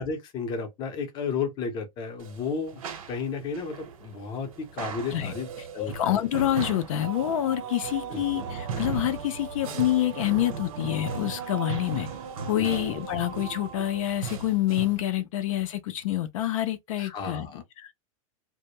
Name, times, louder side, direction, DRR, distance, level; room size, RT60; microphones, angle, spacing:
voice 1, 0.0-2.8 3.1-5.5 5.7-6.2 8.1-8.2 12.6-12.8 17.0-17.6, left 5 dB, 25° left, 0.6 m, -33 dB
sound 1, 2.2-15.0, right 6 dB, 80° right, 0.9 m, -38 dB
voice 2, 5.8-12.1 12.5-17.9, left 13 dB, 70° left, 0.4 m, -27 dB
sound 2, 7.0-14.6, right 8 dB, 55° right, 0.5 m, -40 dB
2.1 x 2.0 x 2.9 m
supercardioid pair, 160°, 17 cm